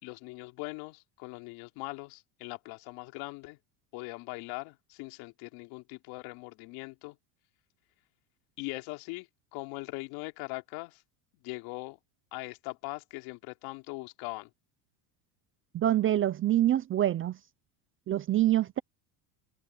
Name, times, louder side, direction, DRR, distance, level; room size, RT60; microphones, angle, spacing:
voice 1, 0.0-3.6 3.9-7.2 8.6-9.3 9.5-11.0 11.4-12.0 12.3-14.5, left 24 dB, 75° left, 3.5 m, -41 dB
voice 2, 15.7-17.4 18.1-18.8, right 12 dB, 30° right, 0.4 m, -25 dB
supercardioid pair, 125°, 48 cm